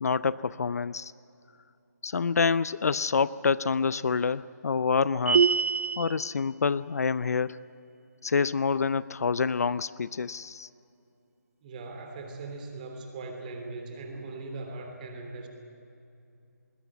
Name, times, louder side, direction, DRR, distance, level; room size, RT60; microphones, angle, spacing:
voice 1, 0.0-1.1 2.0-5.4 6.0-7.6 8.2-10.7, left 5 dB, 60° left, 18 dB, 0.5 m, -27 dB
sound 1, 5.3-6.1, right 6 dB, 50° right, 0.6 m, -23 dB
voice 2, 11.6-15.5, right 3 dB, 30° right, 4 dB, 3.2 m, -40 dB
20.5 x 16.5 x 9.6 m, 2.7 s
hypercardioid pair, 160°, 9 cm